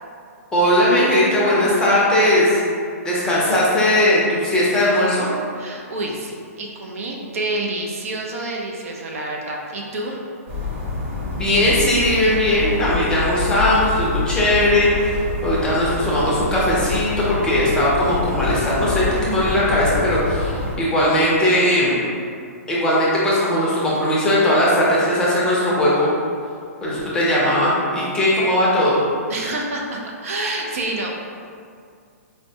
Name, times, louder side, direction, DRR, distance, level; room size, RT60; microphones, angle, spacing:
voice 1, 0.5-2.6 3.0-5.3 11.3-15.2 15.4-22.0 22.7-26.1 26.8-29.0, left 1 dB, 10° left, -7 dB, 0.6 m, -18 dB
voice 2, 5.6-10.1 29.3-31.1, right 2 dB, 60° right, -1 dB, 0.5 m, -28 dB
sound 1, 10.5-20.8, left 3 dB, 45° right, 0.9 m, -27 dB
4.3 x 2.1 x 2.7 m, 2.3 s
hypercardioid pair, 150°, 8 cm